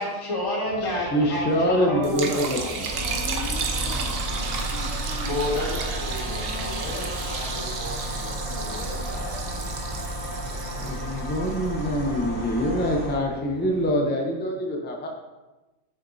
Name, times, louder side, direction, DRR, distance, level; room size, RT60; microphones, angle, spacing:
voice 1, 0.0-2.9 5.2-9.7, left 1 dB, 80° left, -4 dB, 2.3 m, -31 dB
sound 1, 0.6-13.9, right 2 dB, 85° right, 1.2 m, -44 dB
voice 2, 0.8-2.8 10.6-15.1, equal, 15° left, 1 dB, 0.5 m, -25 dB
Liquid, 2.0-12.2, right 5 dB, 60° right, 0.8 m, -34 dB
sound 2, 2.8-13.1, right 1 dB, 35° left, 2.4 m, -32 dB
voice 3, 3.0-5.8 6.2-6.9 7.2-7.3 8.5-9.1, left 3 dB, 60° left, 1 dB, 0.9 m, -40 dB
7.1 x 5.9 x 2.7 m, 1.1 s
omnidirectional pair, 1.3 m